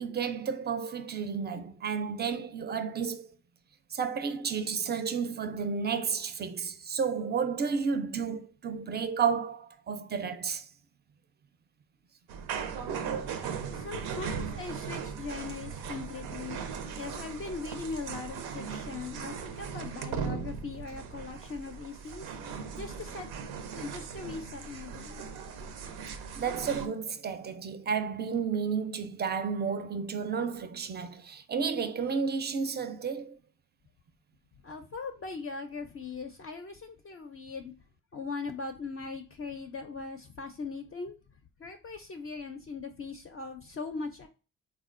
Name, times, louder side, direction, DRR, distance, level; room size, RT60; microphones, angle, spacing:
voice 1, 0.0-3.3 3.9-10.7 26.4-33.4, right 6 dB, 30° right, 0.4 m, -32 dB
sound 1, 12.3-26.9, right 6 dB, 85° right, 0.5 m, -38 dB
voice 2, 13.7-16.6 16.9-22.3 22.7-23.3 23.8-25.2 34.6-37.7 38.1-41.2 41.6-44.3, left 4 dB, 35° left, 0.4 m, -40 dB
3.4 x 2.2 x 2.5 m
cardioid pair, 70°, 37 cm